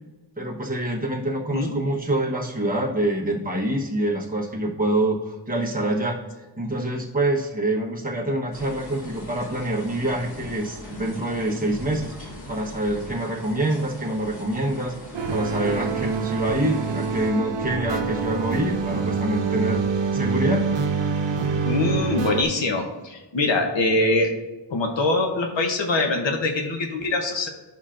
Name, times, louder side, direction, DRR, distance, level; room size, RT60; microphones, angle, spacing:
voice 1, 0.4-6.2 6.6-12.1 12.5-15.0 15.3-19.8 20.1-20.7, right 1 dB, 20° right, -3 dB, 1.1 m, -26 dB
voice 2, 1.5-1.9 21.6-24.3 24.7-27.5, left 2 dB, 80° left, 3 dB, 0.9 m, -23 dB
sound 1, 8.5-17.3, left 1 dB, 55° left, 1.9 m, -40 dB
sound 2, 15.1-22.4, right 5 dB, 70° right, 0.8 m, -26 dB
10.5 x 5.7 x 2.5 m, 1.2 s
wide cardioid pair, 130°, 44 cm